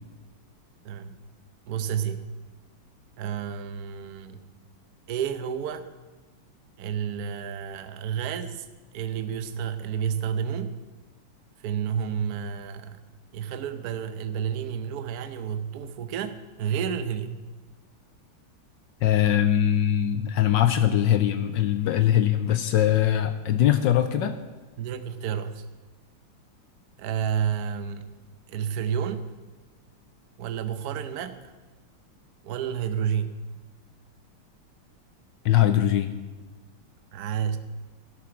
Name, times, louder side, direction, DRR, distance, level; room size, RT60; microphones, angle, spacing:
voice 1, 0.8-1.2 1.7-2.2 3.2-4.4 5.1-5.8 6.8-8.7 8.9-10.8 11.6-13.0 13.3-17.4 24.8-25.6 27.0-28.1 28.5-29.2 30.4-31.5 32.4-33.3 37.1-37.6, right 8 dB, 60° right, 10 dB, 1.0 m, -30 dB
voice 2, 19.0-24.4 35.4-36.1, left 11 dB, 75° left, 10 dB, 1.1 m, -21 dB
12.5 x 11.0 x 4.8 m, 1.3 s
omnidirectional pair, 2.3 m